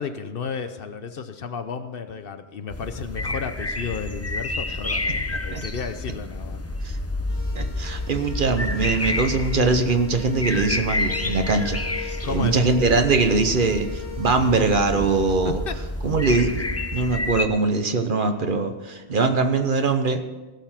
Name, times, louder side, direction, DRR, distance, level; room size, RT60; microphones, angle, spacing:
voice 1, 0.0-6.6 12.2-12.6 15.4-15.8, left 6 dB, 60° left, 9 dB, 0.9 m, -32 dB
sound 1, 2.7-17.5, left 2 dB, 20° left, 0.5 m, -29 dB
sound 2, 7.3-15.3, left 8 dB, 80° right, 4.5 m, -41 dB
voice 2, 7.5-15.6 16.0-16.6 16.9-20.2, right 3 dB, 50° right, 7 dB, 1.1 m, -22 dB
16.5 x 6.9 x 5.8 m, 1.2 s
omnidirectional pair, 1.1 m